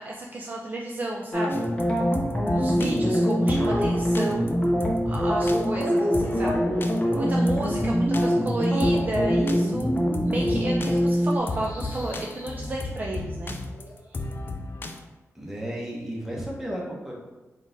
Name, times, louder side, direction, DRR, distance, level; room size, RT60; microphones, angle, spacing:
voice 1, 0.0-1.7 2.5-4.5 5.1-10.0 10.2-13.6 14.1-14.2, right 1 dB, 30° right, -1 dB, 0.4 m, -32 dB
sound 1, 1.3-11.4, equal, 20° left, 0.8 m, -24 dB
sound 2, 1.5-15.0, left 2 dB, 40° left, 0.4 m, -35 dB
sound 3, 11.3-14.1, left 1 dB, 70° left, 0.8 m, -44 dB
voice 2, 15.3-17.1, equal, 5° right, -3 dB, 1.0 m, -33 dB
3.8 x 2.4 x 3.9 m, 1.1 s
wide cardioid pair, 105°, 5 cm